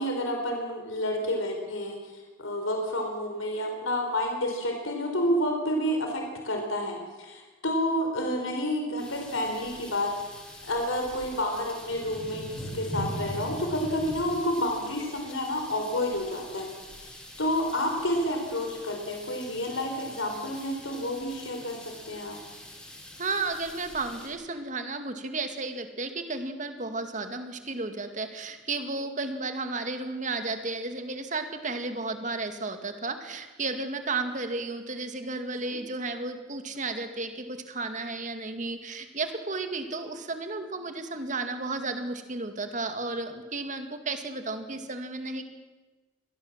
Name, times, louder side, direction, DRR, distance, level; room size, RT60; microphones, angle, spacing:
voice 1, 0.0-2.0 2.4-10.3 10.6-16.7 16.9-21.8 22.1-22.4 35.6-35.8, left 1 dB, 85° left, 2 dB, 4.2 m, -29 dB
sound 1, 9.0-24.3, equal, 5° left, 6.3 m, -43 dB
voice 2, 23.2-45.4, right 3 dB, 40° right, 7 dB, 2.1 m, -33 dB
24.5 x 18.0 x 7.5 m, 1.2 s
head